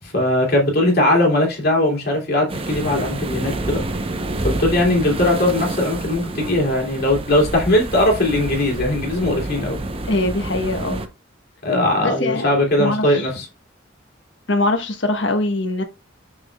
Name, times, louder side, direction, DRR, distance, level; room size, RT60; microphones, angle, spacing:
voice 1, 0.0-3.8 4.4-9.8 11.6-13.5, left 1 dB, 55° left, 2.9 m, -19 dB
sound 1, 2.5-11.1, right 2 dB, 30° right, 0.7 m, -28 dB
voice 2, 10.1-11.0 12.0-13.3 14.5-15.8, left 2 dB, 70° left, 1.3 m, -22 dB
7.5 x 6.3 x 2.3 m
head